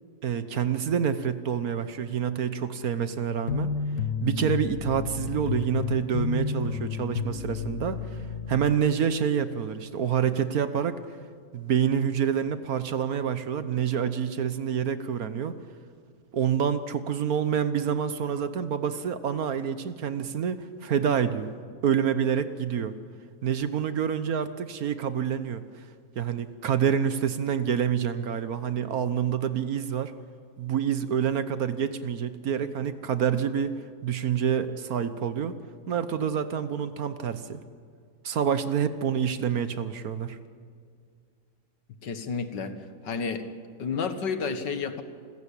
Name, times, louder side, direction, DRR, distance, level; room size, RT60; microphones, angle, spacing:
voice 1, 0.2-3.7 4.2-8.2 8.5-11.0 11.5-15.6 16.3-21.5 21.8-22.9 23.4-25.6 26.2-30.1 30.6-35.6 35.9-37.6 38.2-40.4, right 8 dB, 60° right, 12 dB, 1.4 m, -27 dB
sound 1, 3.5-8.8, left 6 dB, 60° left, 1.4 m, -31 dB
voice 2, 42.0-42.8 43.0-43.5 43.8-45.0, left 5 dB, 75° left, 9 dB, 2.0 m, -30 dB
28.0 x 15.5 x 8.4 m, 2.1 s
omnidirectional pair, 1.9 m